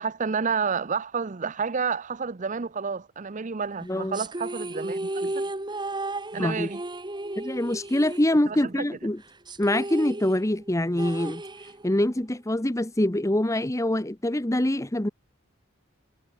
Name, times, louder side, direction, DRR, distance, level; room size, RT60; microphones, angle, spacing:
voice 1, 0.0-5.5 6.3-6.8 8.5-8.9, right 5 dB, 35° right, 0.6 m, -30 dB
voice 2, 3.8-4.2 6.4-6.7 7.4-9.2 9.6-11.4 11.8-15.1, left 1 dB, 15° left, 1.0 m, -25 dB
sound 1, 4.1-8.8 9.1-9.2 9.5-12.1, right 2 dB, 20° right, 1.6 m, -34 dB
head